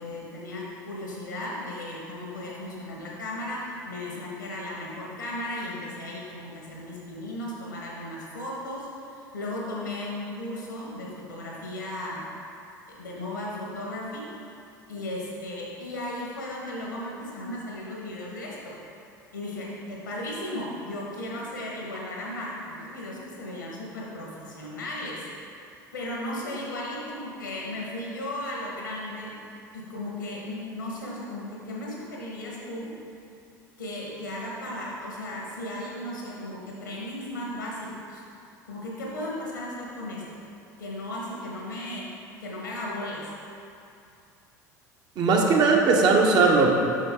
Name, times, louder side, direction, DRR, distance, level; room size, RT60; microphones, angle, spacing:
voice 1, 0.0-12.2 12.9-14.3 14.9-18.7 19.3-25.2 25.9-29.3 29.7-32.9 33.8-38.2 38.6-40.2 40.8-42.1 42.4-43.2, left 1 dB, 80° left, -3 dB, 1.4 m, -35 dB
voice 2, 45.2-46.7, right 4 dB, 45° right, 0 dB, 0.9 m, -19 dB
6.4 x 5.8 x 3.7 m, 2.6 s
figure-of-eight pair, 70°, 10 cm